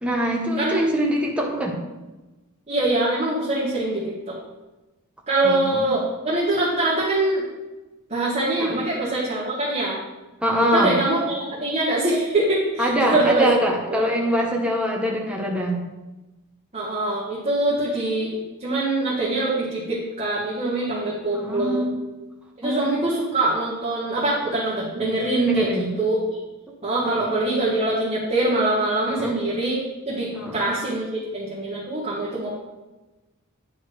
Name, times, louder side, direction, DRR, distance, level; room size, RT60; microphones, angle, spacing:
voice 1, 0.0-1.8 5.4-5.9 8.6-8.8 10.4-10.9 12.8-15.8 21.3-22.0 22.6-23.0 25.5-25.9 27.0-27.3 29.1-29.4 30.3-30.7, equal, 5° right, -1 dB, 0.9 m, -24 dB
voice 2, 0.6-1.0 2.7-4.4 5.3-7.4 8.1-10.0 10.6-13.5 13.9-14.0 16.7-21.8 22.6-26.2 26.8-29.8 30.0-32.5, right 2 dB, 30° right, -8 dB, 1.7 m, -23 dB
9.3 x 4.4 x 4.7 m, 1.1 s
head